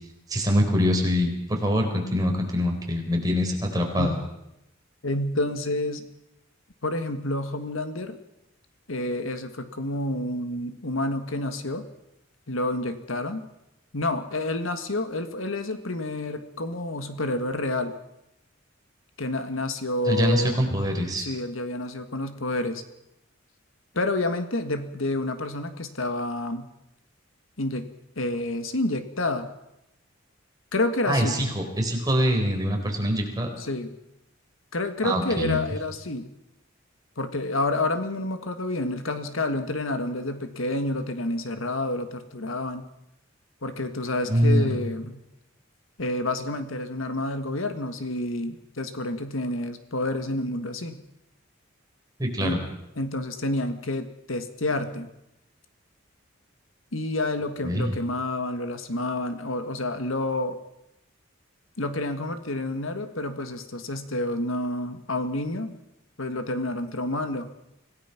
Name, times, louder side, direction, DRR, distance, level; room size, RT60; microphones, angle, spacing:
voice 1, 0.3-4.2 20.1-21.3 31.0-33.6 35.0-35.6 44.3-44.8 52.2-52.6 57.6-57.9, equal, 20° right, 2 dB, 4.2 m, -24 dB
voice 2, 5.0-6.0 6.8-8.2 8.9-11.9 12.5-13.4 13.9-17.9 19.2-20.6 21.2-22.8 23.9-26.7 27.6-27.9 28.2-29.5 30.7-31.4 33.6-33.9 34.7-36.3 37.2-42.9 43.6-45.2 46.0-51.0 52.4-52.6 53.0-55.1 56.9-60.6 61.8-65.8 66.2-67.5, left 2 dB, 75° left, 9 dB, 1.7 m, -29 dB
25.5 x 17.0 x 6.0 m, 0.87 s
head